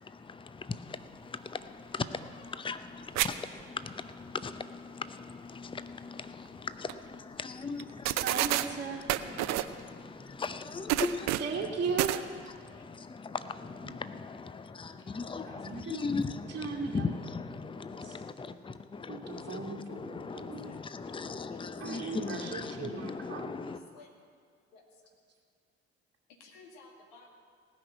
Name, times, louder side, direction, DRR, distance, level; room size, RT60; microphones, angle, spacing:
voice 1, 0.0-8.3 9.1-11.7 12.6-23.8, left 4 dB, 15° left, 0.7 m, -39 dB
sound 1, 3.2-3.3 3.6-3.7 6.5-6.6 6.9-7.0 7.8-8.7 9.1-9.7 10.9-11.6 12.0-12.2, right 15 dB, 55° right, 0.6 m, -28 dB
voice 2, 8.2-9.4 11.4-12.1 13.8-14.0 15.4-16.0 16.5-17.2 18.0-18.2 19.1-20.7 21.8-23.6, right 5 dB, 35° right, 1.6 m, -37 dB
voice 3, 15.1-15.5 20.6-20.8 21.0-21.2 21.5-21.6 23.9-24.1 24.7-24.8 26.4-27.3, left 4 dB, 70° left, 2.2 m, -55 dB
18.5 x 6.3 x 8.0 m
figure-of-eight pair, 50°, 33 cm